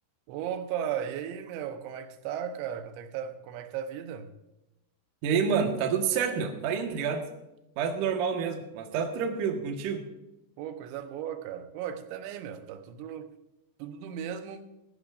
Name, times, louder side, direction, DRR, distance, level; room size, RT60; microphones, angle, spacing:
voice 1, 0.3-4.4 10.6-13.3 13.8-14.7, right 9 dB, 85° right, 3.3 m, -36 dB
voice 2, 5.2-7.2 7.8-10.1, right 6 dB, 60° right, 2.5 m, -28 dB
16.5 x 15.0 x 2.6 m
omnidirectional pair, 5.1 m